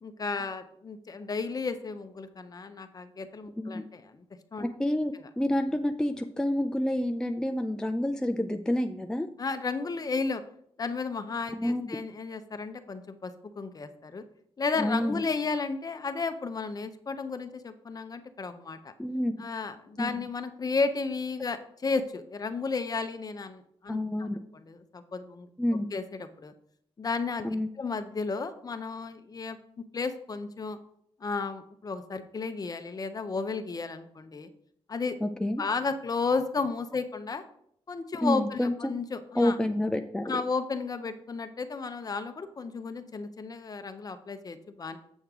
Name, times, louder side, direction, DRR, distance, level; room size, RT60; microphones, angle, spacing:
voice 1, 0.0-4.2 4.5-4.7 9.4-10.4 10.8-14.2 14.6-18.9 19.4-24.3 24.5-25.5 25.9-26.5 27.0-27.5 27.8-29.6 29.9-30.8 31.2-34.5 34.9-35.2 35.6-37.4 37.9-39.6 40.2-45.0, left 4 dB, 35° left, 9 dB, 0.7 m, -33 dB
voice 2, 3.6-3.9 4.8-9.3 11.5-12.0 14.8-15.2 19.0-19.4 20.0-20.2 23.9-24.4 25.6-25.9 27.4-27.7 35.2-35.6 38.2-38.9 39.4-40.4, left 1 dB, 5° left, 5 dB, 0.4 m, -28 dB
8.0 x 6.4 x 3.7 m, 0.68 s
wide cardioid pair, 120°, 11 cm